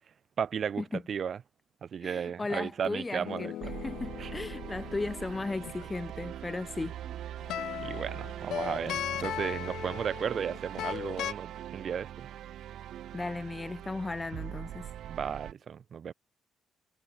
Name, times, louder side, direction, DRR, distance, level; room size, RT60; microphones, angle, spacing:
voice 1, 0.4-1.4 1.8-3.8 4.2-4.3 7.0-7.1 7.8-12.3 15.0-16.1, right 7 dB, 55° right, 2.4 m, -35 dB
voice 2, 2.0-3.5 3.8-7.0 13.1-14.9, left 3 dB, 20° left, 0.8 m, -36 dB
sound 1, 3.2-5.9 7.4-11.3, left 12 dB, 80° left, 1.5 m, -38 dB
sound 2, 3.6-15.5, right 11 dB, 75° right, 3.0 m, -42 dB
cardioid pair, 90°, 0 cm